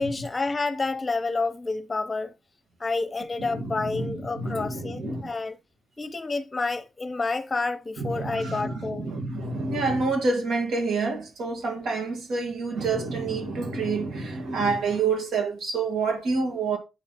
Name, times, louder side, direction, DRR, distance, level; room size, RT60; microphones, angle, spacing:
voice 1, 0.0-2.3 2.8-5.6 6.0-9.1, left 3 dB, 25° left, 0.9 m, -29 dB
voice 2, 3.4-5.3 8.0-16.8, right 4 dB, 90° right, 2.3 m, -28 dB
8.9 x 4.3 x 3.8 m
cardioid pair, 110°, 0 cm